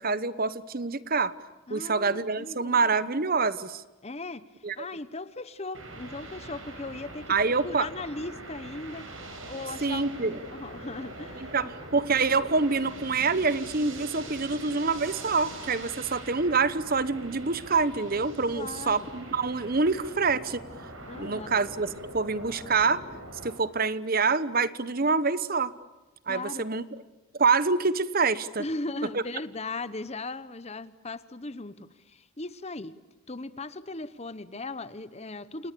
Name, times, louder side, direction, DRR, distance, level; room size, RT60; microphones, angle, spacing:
voice 1, 0.0-1.3 1.7-3.8 4.6-4.7 7.3-7.9 9.8-10.4 11.4-20.6 21.1-21.9 22.1-23.0 23.4-25.7 26.3-26.8 27.3-28.6 29.1-29.2, right 4 dB, 40° right, 16 dB, 1.1 m, -26 dB
voice 2, 1.7-3.0 4.0-9.1 9.5-11.7 18.5-19.1 21.0-21.5 26.3-26.6 28.6-32.9 33.3-35.7, left 2 dB, 30° left, 15 dB, 1.0 m, -38 dB
sound 1, 5.7-23.5, right 1 dB, 65° right, 7.4 m, -43 dB
29.0 x 28.5 x 6.9 m, 1.1 s
head